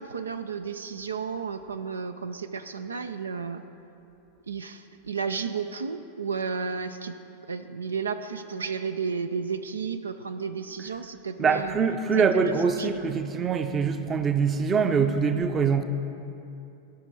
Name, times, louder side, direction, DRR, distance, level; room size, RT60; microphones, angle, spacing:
voice 1, 0.0-3.6 4.5-7.2 7.5-11.8 12.1-12.5 12.8-13.1, right 5 dB, 75° right, 9 dB, 0.4 m, -33 dB
voice 2, 11.4-15.8, right 5 dB, 25° right, 8 dB, 0.6 m, -24 dB
16.5 x 5.9 x 4.7 m, 2.8 s
figure-of-eight pair, 90°, 0 cm